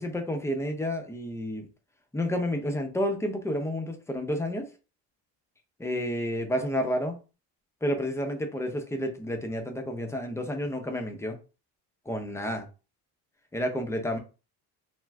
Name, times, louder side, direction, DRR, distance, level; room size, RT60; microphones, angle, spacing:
voice 1, 0.0-1.7 2.1-4.7 5.8-7.2 7.8-11.4 12.1-12.7 13.5-14.2, equal, 5° left, 0.5 m, -30 dB
2.5 x 2.3 x 3.2 m
cardioid pair, 105°, 41 cm